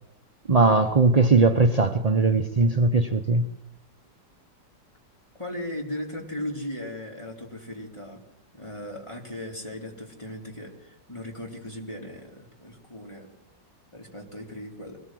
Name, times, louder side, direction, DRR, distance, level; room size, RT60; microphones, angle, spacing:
voice 1, 0.5-3.4, right 3 dB, 40° right, 0.5 m, -19 dB
voice 2, 5.4-8.2 8.5-13.3 13.9-15.0, left 1 dB, 15° left, 3.8 m, -37 dB
24.5 x 19.5 x 7.7 m
omnidirectional pair, 2.0 m